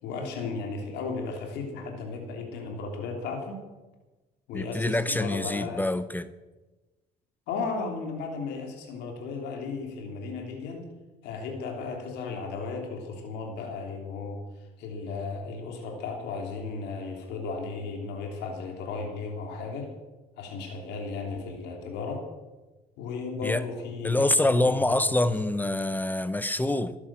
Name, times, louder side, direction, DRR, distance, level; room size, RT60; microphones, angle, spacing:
voice 1, 0.0-3.6 4.5-5.9 7.5-10.9 11.2-14.4 14.8-19.9 20.4-22.2 23.0-25.0, left 4 dB, 90° left, 3.2 m, -35 dB
voice 2, 4.5-6.3 23.4-23.6 24.0-27.0, left 1 dB, 10° left, 0.8 m, -25 dB
16.5 x 11.0 x 7.4 m
cardioid pair, 110°, 17 cm